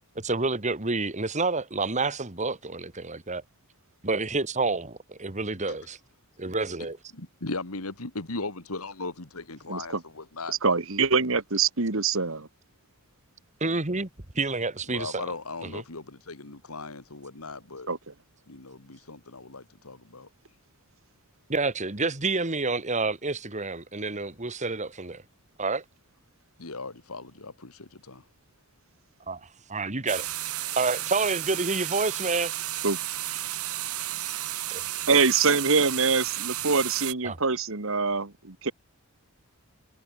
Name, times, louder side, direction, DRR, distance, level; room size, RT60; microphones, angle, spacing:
voice 1, 0.2-3.4 4.0-6.0 6.4-7.0 13.6-14.1 14.3-15.2 15.7-15.8 21.5-25.2 25.6-25.8 29.3-29.4 29.7-30.3 30.8-32.5 34.7-34.8 37.2-37.4, right 3 dB, 35° right, 2.0 m, -28 dB
voice 2, 7.1-10.6 14.9-17.9 18.5-20.3 26.6-28.2, left 3 dB, 75° left, 2.5 m, -38 dB
voice 3, 9.7-10.0 10.5-12.5 17.9-18.1 32.8-33.0 35.1-38.7, right 4 dB, 65° right, 1.9 m, -24 dB
sound 1, 30.1-37.1, right 14 dB, 80° right, 3.1 m, -33 dB
head